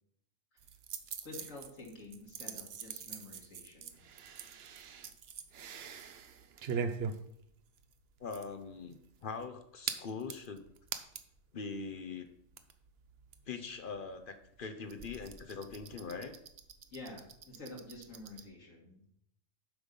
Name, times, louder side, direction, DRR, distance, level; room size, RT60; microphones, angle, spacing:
sound 1, 0.6-11.4 11.8-11.9 12.1-18.4, right 6 dB, 55° right, 0.8 m, -44 dB
voice 1, 1.2-4.0 16.9-19.1, left 2 dB, 65° left, -1 dB, 2.1 m, -49 dB
voice 2, 8.2-10.6 11.5-12.3 13.5-16.4, left 4 dB, 50° left, 9 dB, 0.7 m, -42 dB
8.1 x 5.4 x 5.3 m, 0.73 s
omnidirectional pair, 1.5 m